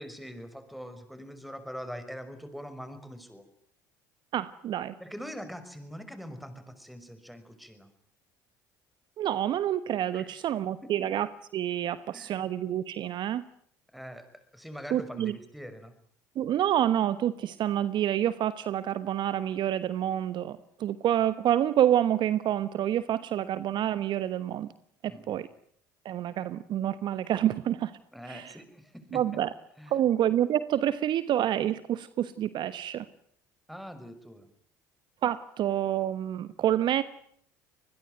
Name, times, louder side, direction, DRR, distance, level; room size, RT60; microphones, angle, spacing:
voice 1, 0.0-3.4 5.0-7.9 10.1-10.3 10.8-10.9 12.1-12.4 13.9-15.9 25.1-25.4 28.1-29.2 29.8-29.9 33.7-34.5, equal, ahead, 10 dB, 5.6 m, -43 dB
voice 2, 4.3-4.9 9.2-13.4 14.9-15.3 16.3-24.7 25.0-25.5 26.0-27.9 28.3-28.5 29.1-29.5 29.9-33.0 35.2-37.0, right 11 dB, 50° right, 15 dB, 1.2 m, -28 dB
25.5 x 21.0 x 9.2 m, 0.65 s
hypercardioid pair, 65°, 10 cm